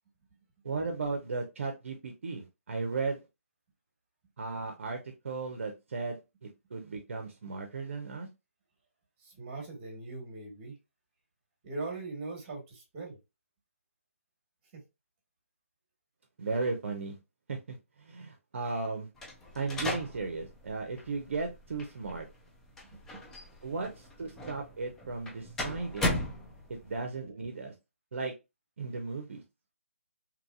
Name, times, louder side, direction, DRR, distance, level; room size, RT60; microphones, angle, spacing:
voice 1, 0.6-3.2 4.4-5.0 5.2-8.3 16.4-17.2 17.5-19.1 19.5-22.3 23.6-26.3 26.7-27.7 28.1-28.3 28.8-29.4, right 4 dB, 60° right, 3 dB, 0.6 m, -36 dB
voice 2, 9.2-10.8 11.6-13.2 14.7-14.8 22.9-23.2, right 3 dB, 25° right, 0 dB, 1.3 m, -41 dB
sound 1, 19.2-27.0, left 1 dB, 5° left, 0.3 m, -38 dB
2.9 x 2.6 x 2.4 m, 0.24 s
figure-of-eight pair, 155°, 8 cm